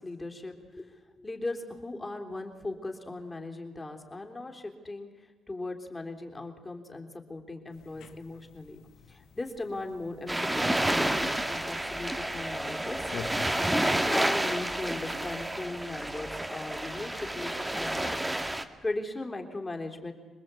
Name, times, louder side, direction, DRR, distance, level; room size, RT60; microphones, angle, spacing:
voice 1, 0.0-8.8 9.1-13.4 13.7-20.1, left 2 dB, 20° left, 3 dB, 3.6 m, -38 dB
sound 1, 7.7-13.7, left 8 dB, 75° left, 1.6 m, -48 dB
sound 2, 10.3-18.6, right 1 dB, 10° right, 1.9 m, -30 dB
26.5 x 20.0 x 8.4 m, 1.4 s
cardioid pair, 90°, 0 cm